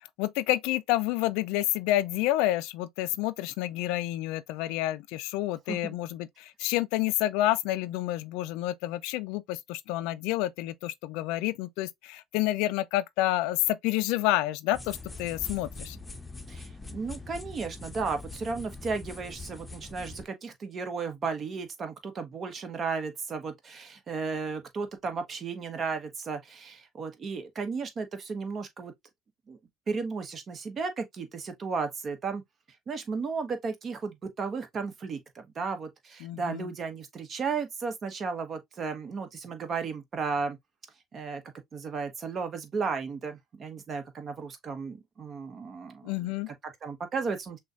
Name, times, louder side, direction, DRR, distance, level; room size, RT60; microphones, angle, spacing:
voice 1, 0.2-16.0 36.2-36.7 46.0-46.5, left 15 dB, 70° left, 0.3 m, -29 dB
sound 1, 14.7-20.2, left 3 dB, 15° left, 0.8 m, -43 dB
voice 2, 16.5-28.9 29.5-29.6 29.9-32.4 32.9-40.6 41.1-41.4 41.7-47.6, right 4 dB, 40° right, 1.1 m, -34 dB
6.1 x 2.3 x 2.4 m
hypercardioid pair, 65°, 0 cm